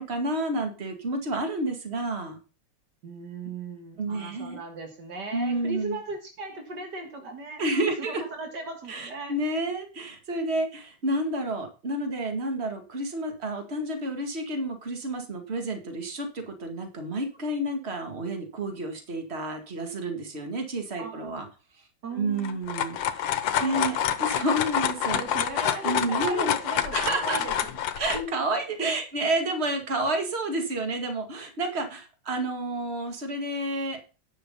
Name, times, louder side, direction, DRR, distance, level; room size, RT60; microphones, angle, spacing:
voice 1, 0.0-2.4 4.0-4.6 5.3-6.0 7.6-8.2 8.9-21.5 22.1-25.2 25.8-26.5 26.9-27.4 28.0-34.0, right 1 dB, 35° right, 2.1 m, -30 dB
voice 2, 3.0-9.3 21.0-21.4 22.0-22.6 23.6-24.0 25.1-27.7 28.1-28.3 28.8-28.9, right 3 dB, 60° right, 2.2 m, -37 dB
sound 1, 22.4-28.2, left 9 dB, 80° left, 1.7 m, -27 dB
10.5 x 6.2 x 5.5 m
omnidirectional pair, 2.1 m